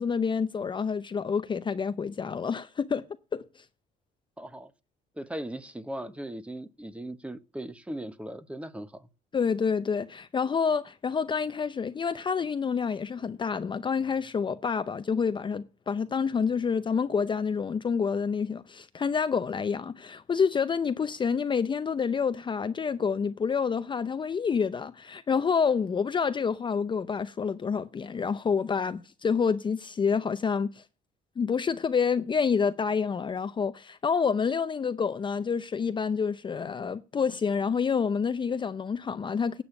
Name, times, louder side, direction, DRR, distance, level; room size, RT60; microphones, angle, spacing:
voice 1, 0.0-3.0 3.3-3.6 9.3-30.8 31.4-39.6, left 6 dB, 30° left, 0.6 m, -28 dB
voice 2, 4.4-4.7 5.2-9.1, right 1 dB, 5° right, 1.0 m, -38 dB
8.7 x 8.3 x 7.0 m
cardioid pair, 110°, 17 cm